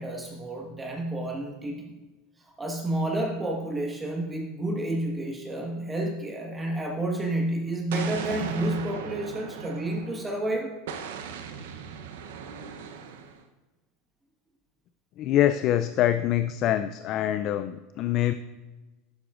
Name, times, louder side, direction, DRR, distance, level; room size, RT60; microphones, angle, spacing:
voice 1, 0.0-1.9 2.6-10.7, right 1 dB, 15° right, 0 dB, 1.4 m, -30 dB
Explosion, 7.9-10.4 10.9-13.4, right 7 dB, 80° right, 0.8 m, -37 dB
voice 2, 15.2-18.3, left 12 dB, 50° left, 10 dB, 0.4 m, -25 dB
10.5 x 8.1 x 2.5 m, 1.1 s
hypercardioid pair, 105°, 0 cm